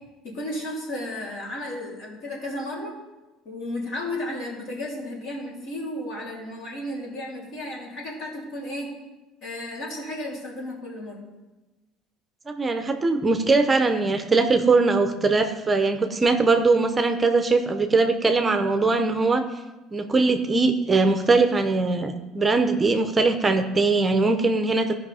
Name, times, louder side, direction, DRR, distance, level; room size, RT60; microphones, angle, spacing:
voice 1, 0.2-2.9 3.4-8.9 9.4-11.2, left 1 dB, 65° left, -3 dB, 3.3 m, -33 dB
voice 2, 12.5-19.4 19.9-24.9, right 3 dB, 20° right, 7 dB, 0.6 m, -21 dB
14.5 x 5.4 x 4.2 m, 1.1 s
cardioid pair, 130°, 0 cm